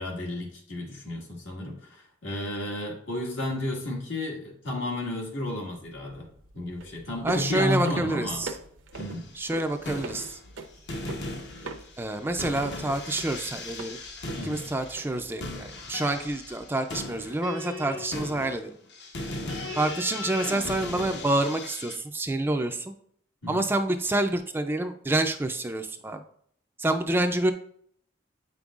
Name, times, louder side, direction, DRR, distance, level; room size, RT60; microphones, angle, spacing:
voice 1, 0.0-6.3 6.5-8.4 9.0-9.3 14.4-14.6 19.4-19.7 23.4-23.7, left 1 dB, 75° left, -1 dB, 1.8 m, -32 dB
sound 1, 5.7-16.7, right 3 dB, 85° right, 0.7 m, -44 dB
voice 2, 7.2-8.6 9.3-10.4 12.0-14.0 14.4-18.7 19.7-22.9 23.5-26.2 26.8-27.5, right 2 dB, 10° right, 6 dB, 0.3 m, -28 dB
sound 2, 8.9-9.3 9.7-10.6 10.9-22.0, left 2 dB, 60° left, 1.0 m, -37 dB
8.5 x 5.3 x 2.4 m, 0.64 s
head